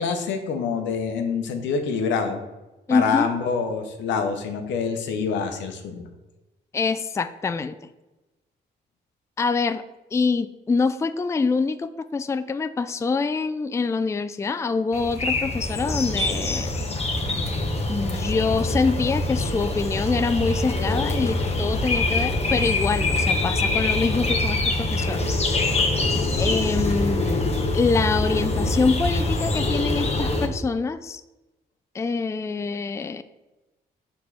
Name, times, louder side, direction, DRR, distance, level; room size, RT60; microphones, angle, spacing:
voice 1, 0.0-2.4 2.9-6.1, left 5 dB, 85° left, 5 dB, 0.7 m, -26 dB
voice 2, 2.9-3.3 6.7-7.7 9.4-9.8 10.1-16.7 17.9-25.2 26.4-31.2 31.9-33.2, left 4 dB, 15° left, 12 dB, 0.3 m, -25 dB
sound 1, 14.9-30.5, left 2 dB, 35° left, 1.0 m, -24 dB
4.7 x 3.7 x 5.5 m, 1.1 s
supercardioid pair, 65°, 18 cm